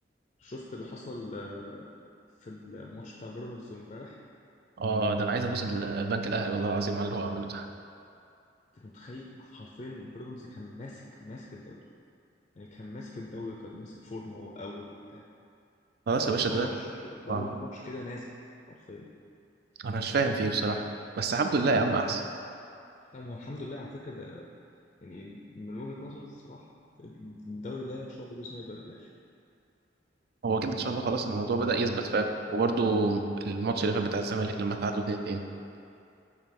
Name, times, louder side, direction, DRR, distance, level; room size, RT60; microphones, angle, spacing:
voice 1, 0.4-1.9 2.4-4.2 8.7-11.8 12.6-15.2 16.2-18.3 18.7-19.1 23.1-24.5 25.0-26.7 27.0-29.1, left 2 dB, 35° left, -2 dB, 0.4 m, -42 dB
voice 2, 4.8-7.7 16.1-16.7 17.3-17.5 19.8-20.9 21.2-22.2 30.4-35.5, right 3 dB, 55° right, 5 dB, 0.4 m, -28 dB
6.4 x 3.2 x 5.2 m, 2.5 s
head